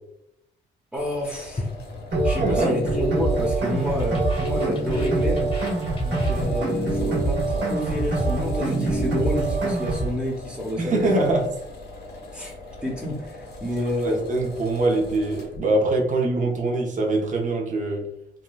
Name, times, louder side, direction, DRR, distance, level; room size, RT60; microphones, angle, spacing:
voice 1, 0.9-1.7 2.2-5.5 6.0-11.3 12.3-12.5 12.8-14.2, equal, 5° right, -4 dB, 0.8 m, -29 dB
sound 1, 1.0-15.6, left 2 dB, 55° left, 1.0 m, -41 dB
sound 2, 1.6-2.7 2.9-3.3 3.6-6.9 7.2-7.5 7.8-8.1, left 2 dB, 30° left, 1.0 m, -38 dB
sound 3, 2.1-10.1, right 2 dB, 65° right, 1.4 m, -24 dB
voice 2, 2.4-2.7 10.8-11.4 14.0-18.1, right 2 dB, 40° right, 0 dB, 0.7 m, -23 dB
3.7 x 2.2 x 2.3 m, 0.78 s
cardioid pair, 90°, 20 cm